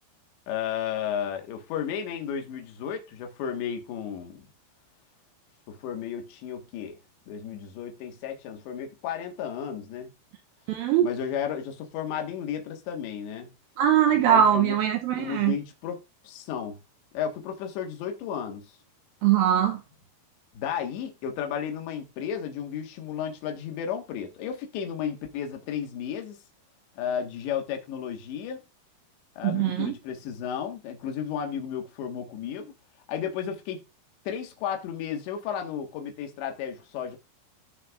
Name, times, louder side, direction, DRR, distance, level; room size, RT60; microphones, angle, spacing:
voice 1, 0.5-4.5 5.7-7.0 7.3-10.1 11.0-13.5 14.1-14.8 15.2-16.0 16.3-16.8 17.1-18.6 20.6-26.4 27.0-28.6 29.4-32.7 33.1-33.9 34.3-37.2, left 8 dB, 75° left, 3.8 m, -33 dB
voice 2, 10.7-11.1 13.8-15.6 19.2-19.8 29.4-29.9, right 10 dB, 85° right, 2.1 m, -22 dB
17.0 x 6.4 x 2.5 m
omnidirectional pair, 5.1 m